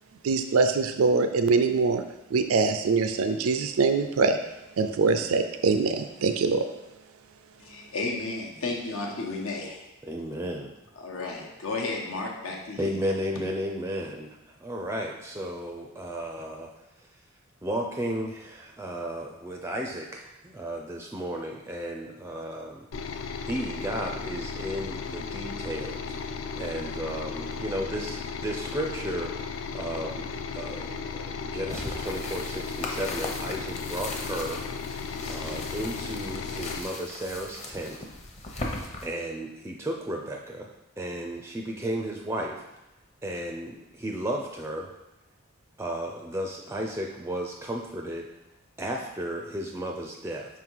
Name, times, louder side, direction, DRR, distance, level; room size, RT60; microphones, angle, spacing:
voice 1, 0.2-2.0 2.3-4.4 4.8-6.6, right 4 dB, 80° right, 8 dB, 0.4 m, -23 dB
voice 2, 7.6-9.8 11.0-12.9, left 3 dB, 85° left, -1 dB, 1.1 m, -33 dB
voice 3, 10.0-10.7 12.8-16.7 17.6-22.9 23.4-26.2 26.5-29.3 29.7-30.3 30.5-34.6 35.3-38.0 39.0-40.7 41.0-42.6 43.2-44.9 45.8-48.2 48.8-50.5, right 1 dB, 15° right, 1 dB, 0.4 m, -34 dB
sound 1, 22.9-36.8, left 5 dB, 65° left, 0.4 m, -35 dB
sound 2, 31.7-39.1, left 2 dB, 30° left, 0.8 m, -38 dB
5.7 x 3.8 x 4.6 m, 0.95 s
head